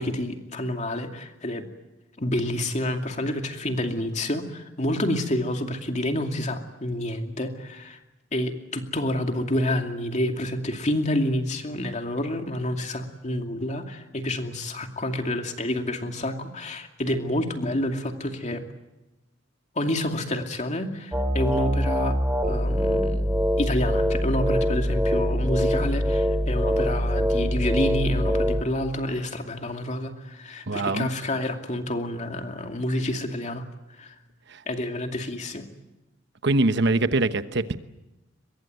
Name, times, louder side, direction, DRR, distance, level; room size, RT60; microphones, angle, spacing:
voice 1, 0.0-1.7 2.2-8.0 8.3-18.6 19.8-22.2 22.5-33.7 34.0-34.1 34.7-35.7, left 1 dB, 35° left, 4 dB, 2.5 m, -28 dB
sound 1, 21.1-28.6, equal, 10° right, 3.1 m, -24 dB
voice 2, 30.7-31.1 34.5-34.6 36.4-37.7, right 2 dB, 60° right, 11 dB, 1.1 m, -23 dB
23.5 x 22.0 x 9.3 m, 0.98 s
head